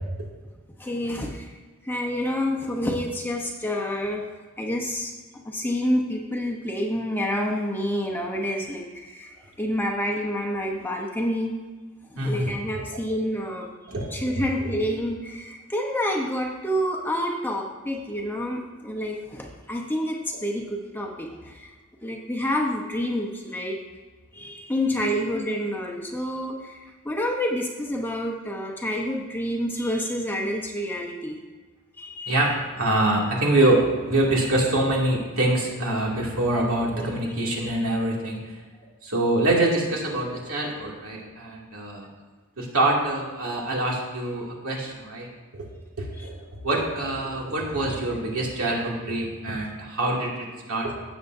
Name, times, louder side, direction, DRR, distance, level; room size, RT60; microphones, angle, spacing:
voice 1, 0.8-1.5 1.8-4.2 4.6-5.1 5.4-11.5 12.1-21.7 22.0-23.8 24.3-31.4 32.0-32.4 32.9-33.0 37.2-37.7 46.2-46.3, equal, 10° left, 0 dB, 0.8 m, -28 dB
voice 2, 12.2-12.5 12.9-13.0 13.9-14.1 14.4-14.8 25.0-25.1 32.3-38.4 39.0-42.1 42.6-45.3 45.5-45.6 46.0-46.3 46.6-50.9, right 1 dB, 80° right, -3 dB, 2.4 m, -25 dB
16.5 x 7.0 x 2.7 m, 1.4 s
head